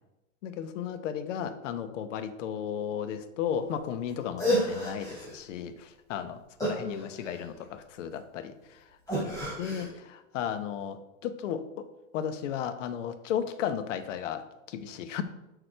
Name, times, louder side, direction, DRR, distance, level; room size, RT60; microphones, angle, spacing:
voice 1, 0.4-8.9 9.2-11.9 12.1-15.2, left 8 dB, 65° left, 11 dB, 0.9 m, -34 dB
sound 1, 4.1-4.2 4.4-5.4 6.6-7.6 9.1-9.9, equal, 10° left, 3.0 m, -30 dB
6.9 x 6.2 x 4.4 m, 0.98 s
supercardioid pair, 155°, 40 cm